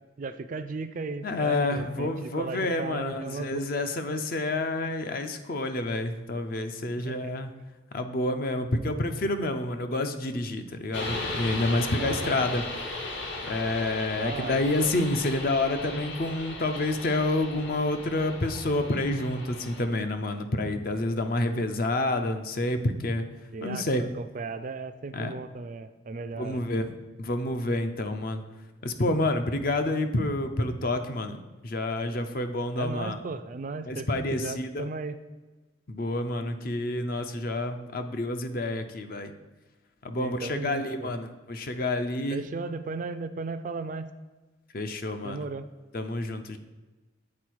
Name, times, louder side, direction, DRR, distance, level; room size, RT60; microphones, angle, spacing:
voice 1, 0.2-3.6 7.0-7.3 12.0-12.4 14.1-14.6 23.5-26.6 32.8-35.2 40.2-41.1 42.3-44.1 45.2-45.7, right 4 dB, 40° right, 10 dB, 0.3 m, -36 dB
voice 2, 1.2-7.5 7.9-12.6 13.5-23.2 23.6-24.0 25.1-25.3 26.4-26.9 27.2-28.4 28.8-31.4 31.6-33.2 33.9-34.9 35.9-39.3 40.0-42.5 44.7-45.5 45.9-46.6, left 2 dB, 50° left, 8 dB, 0.5 m, -28 dB
sound 1, 10.9-19.9, left 2 dB, 65° left, 1.1 m, -36 dB
8.6 x 4.1 x 4.6 m, 1.2 s
head